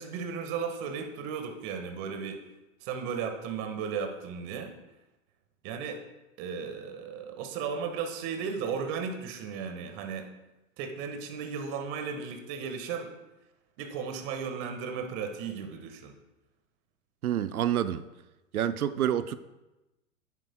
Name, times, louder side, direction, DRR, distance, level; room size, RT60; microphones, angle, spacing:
voice 1, 0.0-2.4 2.8-4.7 5.6-6.0 6.4-10.3 10.8-13.1 13.8-16.1, right 6 dB, 40° right, 5 dB, 1.4 m, -35 dB
voice 2, 17.2-18.1 18.5-19.4, right 10 dB, 85° right, 13 dB, 0.6 m, -28 dB
10.0 x 9.6 x 2.2 m, 1.0 s
hypercardioid pair, 125°, 42 cm